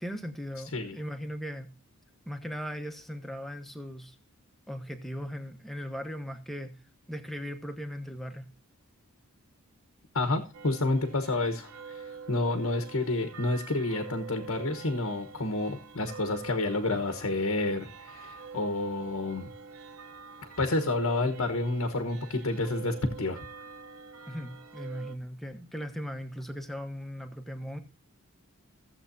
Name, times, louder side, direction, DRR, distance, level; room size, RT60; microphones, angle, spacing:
voice 1, 0.0-1.7 2.3-4.2 4.7-6.7 7.1-8.5 24.3-27.8, equal, ahead, 1.1 m, -38 dB
voice 2, 10.1-12.0 12.3-19.5 20.6-23.4, left 2 dB, 70° left, 1.2 m, -29 dB
sound 1, 10.5-25.2, right 5 dB, 70° right, 0.9 m, -46 dB
15.5 x 7.6 x 2.7 m
head